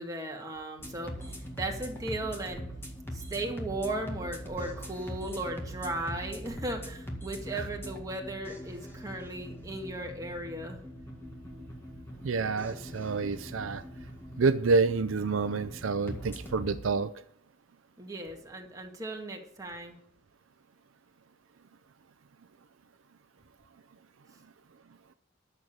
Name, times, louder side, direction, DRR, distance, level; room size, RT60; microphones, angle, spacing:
voice 1, 0.0-2.6 3.1-10.8 18.0-20.0 24.3-24.4, right 2 dB, 20° right, 1 dB, 2.0 m, -36 dB
sound 1, 0.8-16.8, equal, 10° left, 2.0 m, -42 dB
voice 2, 12.2-13.8 14.4-17.1, right 4 dB, 80° right, 12 dB, 0.5 m, -28 dB
11.0 x 7.0 x 7.3 m, 0.67 s
head